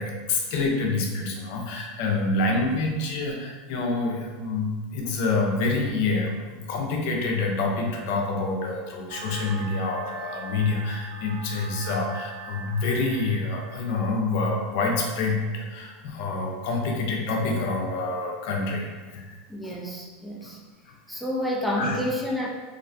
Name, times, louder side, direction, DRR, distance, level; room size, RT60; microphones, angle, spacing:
voice 1, 0.0-19.3 19.6-19.7 20.9-21.0 21.8-22.0, left 3 dB, 65° left, 0 dB, 0.5 m, -27 dB
sound 1, 9.1-14.1, right 5 dB, 85° right, 0.3 m, -41 dB
voice 2, 19.5-20.6 21.1-22.5, left 1 dB, ahead, -3 dB, 0.4 m, -29 dB
2.5 x 2.1 x 2.5 m, 1.4 s
supercardioid pair, 125°, 0 cm